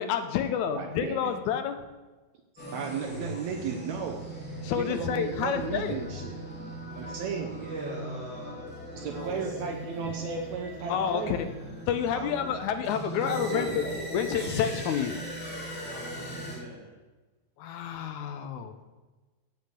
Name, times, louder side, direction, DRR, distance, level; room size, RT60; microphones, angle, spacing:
voice 1, 0.0-1.8 4.6-6.0 10.9-11.4 11.9-13.8 14.1-15.2 17.6-18.7, left 8 dB, 80° left, 8 dB, 2.1 m, -29 dB
voice 2, 0.7-1.3 2.7-4.2 4.7-6.4 6.9-7.6 8.9-11.4, right 6 dB, 70° right, 3 dB, 2.1 m, -34 dB
sound 1, 2.6-16.6, right 1 dB, 5° left, 2.3 m, -39 dB
voice 3, 6.9-9.6 12.1-12.5 13.1-13.9 15.8-16.9 18.8-18.9, right 1 dB, 35° right, -8 dB, 5.4 m, -40 dB
9.5 x 7.0 x 8.2 m, 1.2 s
omnidirectional pair, 3.5 m